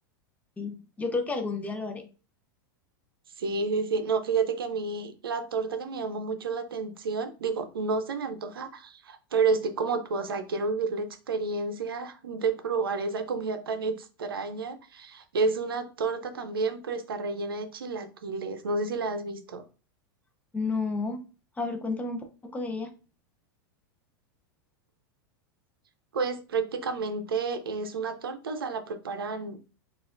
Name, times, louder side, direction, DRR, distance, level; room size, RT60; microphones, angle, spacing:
voice 1, 0.6-2.0 20.5-21.2 21.6-22.9, left 3 dB, 15° left, 4 dB, 0.7 m, -31 dB
voice 2, 3.4-19.6 26.1-29.6, right 4 dB, 90° right, 8 dB, 0.5 m, -30 dB
4.1 x 2.4 x 2.5 m, 0.34 s
hypercardioid pair, 105°, 12 cm